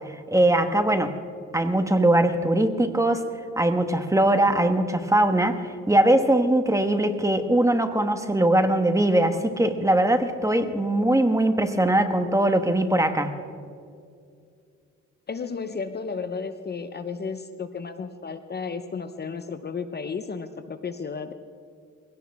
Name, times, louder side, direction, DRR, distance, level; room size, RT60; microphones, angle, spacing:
voice 1, 0.3-1.1 1.5-3.3 3.6-13.3, right 1 dB, 10° right, 8 dB, 1.3 m, -21 dB
voice 2, 15.3-21.3, left 5 dB, 35° left, 9 dB, 0.9 m, -33 dB
22.5 x 17.0 x 3.6 m, 2.3 s
cardioid pair, 90°, 30 cm